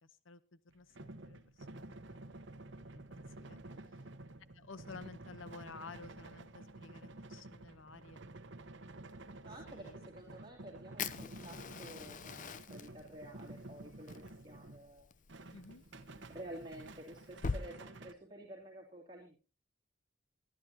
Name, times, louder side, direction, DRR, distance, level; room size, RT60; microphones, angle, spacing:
voice 1, 0.0-2.2 2.9-3.6 4.5-8.2 9.7-9.9 15.5-15.8, left 4 dB, 70° left, 14 dB, 0.8 m, -53 dB
sound 1, 0.7-14.9 15.3-18.1, right 2 dB, 65° right, 1.0 m, -51 dB
voice 2, 3.3-3.8 9.4-15.1 16.3-19.4, right 1 dB, 25° right, -4 dB, 2.7 m, -51 dB
Fire, 11.0-17.6, left 4 dB, 40° left, 0.6 m, -44 dB
24.0 x 11.0 x 2.8 m, 0.33 s
head